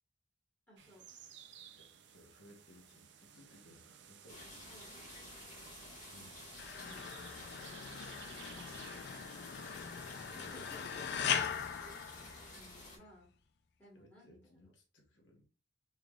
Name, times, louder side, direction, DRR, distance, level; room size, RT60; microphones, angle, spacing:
voice 1, 0.7-1.1 4.5-5.1 6.8-7.6 8.2-9.3 10.3-11.4 11.8-12.1 12.5-13.3 13.8-14.7, left 1 dB, 10° left, -5 dB, 1.2 m, -59 dB
sound 1, 0.8-11.5, right 8 dB, 60° right, 0.4 m, -57 dB
voice 2, 1.6-4.5 6.1-6.5 10.2-10.8 13.9-15.4, equal, 75° left, 1 dB, 1.1 m, -62 dB
sound 2, 4.3-13.0, left 2 dB, 40° left, 1.4 m, -52 dB
sound 3, 6.6-12.9, left 7 dB, 55° left, 0.3 m, -40 dB
3.4 x 3.4 x 2.3 m, 0.35 s
head